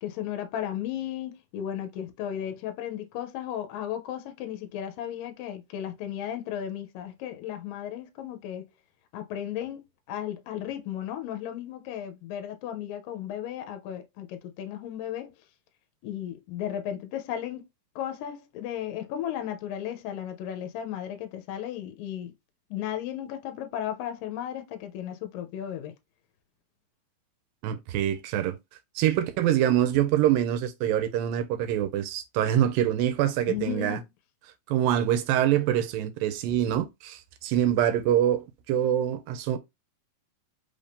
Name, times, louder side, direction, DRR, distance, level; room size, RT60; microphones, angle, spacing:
voice 1, 0.0-8.7 9.1-15.3 16.0-17.6 18.0-22.3 22.7-25.9 33.5-34.0, left 10 dB, 80° left, 2.3 m, -35 dB
voice 2, 27.6-28.6 29.0-34.0 34.7-39.6, right 11 dB, 80° right, 2.3 m, -25 dB
5.3 x 2.7 x 3.5 m
omnidirectional pair, 4.1 m